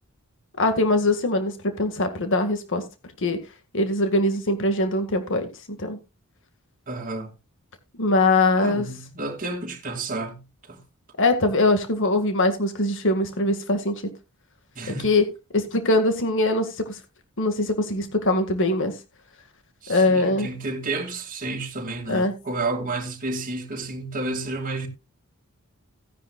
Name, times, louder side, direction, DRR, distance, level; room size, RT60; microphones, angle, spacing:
voice 1, 0.6-2.8 3.2-3.4 3.7-5.5 5.8-6.0 8.0-8.9 11.2-14.1 15.0-15.2 15.5-17.0 17.4-18.9 19.9-20.5 22.1-22.3, left 2 dB, 60° left, 1.9 m, -22 dB
voice 2, 6.9-7.3 8.5-10.4 10.7-10.8 14.7-15.1 19.8-24.9, right 2 dB, 40° right, 2.8 m, -31 dB
16.5 x 10.0 x 2.4 m
head